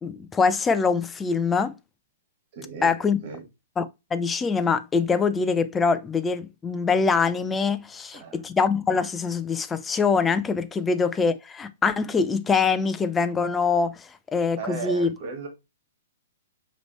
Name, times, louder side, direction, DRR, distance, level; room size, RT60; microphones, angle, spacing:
voice 1, 0.0-1.7 2.8-3.2 3.8-3.9 4.1-15.1, left 5 dB, 15° left, 0.4 m, -24 dB
voice 2, 2.5-3.5 8.1-8.5 14.6-15.5, right 5 dB, 50° right, 1.6 m, -36 dB
5.0 x 3.1 x 3.0 m
hypercardioid pair, 120°, 0 cm